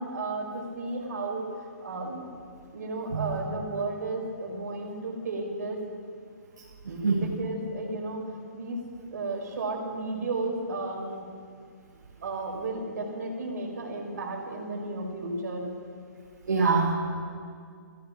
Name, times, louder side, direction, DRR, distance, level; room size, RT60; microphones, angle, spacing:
voice 1, 0.0-2.3 2.7-5.8 6.8-8.2 8.5-8.8 9.1-11.3 12.2-15.7, right 2 dB, 65° right, 0 dB, 4.6 m, -33 dB
voice 2, 6.8-7.3 16.5-16.9, right 4 dB, 80° right, -4 dB, 3.2 m, -24 dB
15.0 x 14.0 x 6.0 m, 2.2 s
hypercardioid pair, 150°, 10 cm